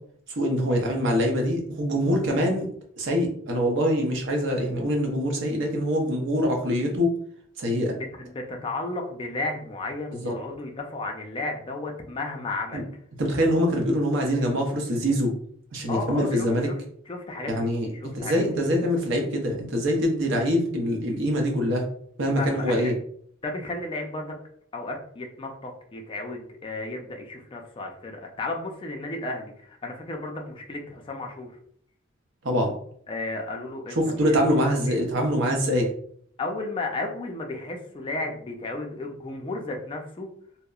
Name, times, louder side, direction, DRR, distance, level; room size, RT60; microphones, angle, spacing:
voice 1, 0.4-2.7 3.0-7.1 7.6-8.0 10.2-10.3 12.7-12.8 13.2-15.3 15.7-16.7 17.5-17.9 18.1-21.8 22.2-22.9 32.4-32.7 34.0-35.9, equal, 60° right, 2 dB, 0.6 m, -24 dB
voice 2, 7.9-12.8 15.9-16.8 17.1-18.4 22.4-22.9 23.4-24.3 24.7-31.5 33.1-34.2 34.9-35.0 36.4-40.3, left 2 dB, 25° left, 2 dB, 0.4 m, -33 dB
2.7 x 2.0 x 2.3 m, 0.63 s
head